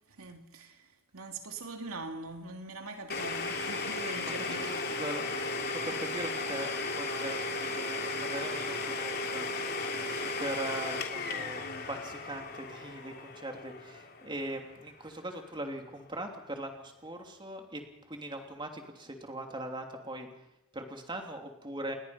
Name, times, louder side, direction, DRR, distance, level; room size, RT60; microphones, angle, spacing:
voice 1, 0.2-5.0, right 3 dB, 75° right, 2.8 m, -42 dB
Domestic sounds home sounds, 3.1-14.7, left 3 dB, 45° left, 3.2 m, -35 dB
voice 2, 4.4-17.8 18.1-20.3 20.7-22.0, right 1 dB, 20° right, 3.0 m, -41 dB
29.5 x 20.5 x 5.9 m
head